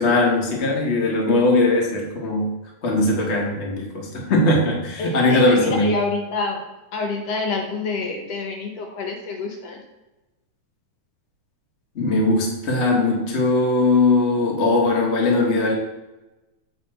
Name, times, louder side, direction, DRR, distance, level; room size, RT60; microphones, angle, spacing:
voice 1, 0.0-2.5 2.8-5.9 11.9-15.7, left 2 dB, 45° left, -1 dB, 0.8 m, -20 dB
voice 2, 5.0-6.6 6.9-9.8, left 3 dB, 70° left, 1 dB, 1.8 m, -27 dB
8.1 x 3.5 x 4.3 m, 1.0 s
omnidirectional pair, 3.5 m